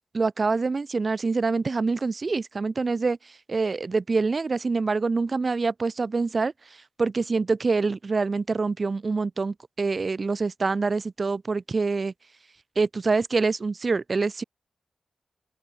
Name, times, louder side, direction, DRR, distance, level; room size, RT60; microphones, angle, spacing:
voice 1, 0.1-12.1 12.8-14.4, right 4 dB, 50° right, 0.9 m, -26 dB
open air
cardioid pair, 55°, 0 cm